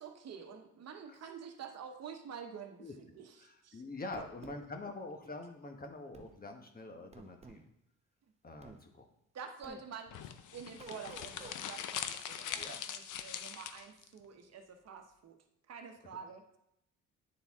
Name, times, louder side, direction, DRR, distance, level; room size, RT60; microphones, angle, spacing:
voice 1, 0.0-3.8 4.1-4.2 9.3-10.2 10.5-15.4 15.7-16.6, right 6 dB, 55° right, 5 dB, 1.0 m, -48 dB
voice 2, 3.4-7.7 8.4-9.0 12.5-12.8, left 2 dB, 30° left, 4 dB, 1.1 m, -45 dB
sound 1, 4.1-4.6 6.1-6.3 7.1-7.6 8.6-8.8 9.6-9.8 10.8-11.6, right 3 dB, 20° right, 0.7 m, -52 dB
sound 2, 10.1-14.1, left 9 dB, 80° left, 0.6 m, -42 dB
9.5 x 4.1 x 3.6 m, 0.80 s
cardioid pair, 90°, 30 cm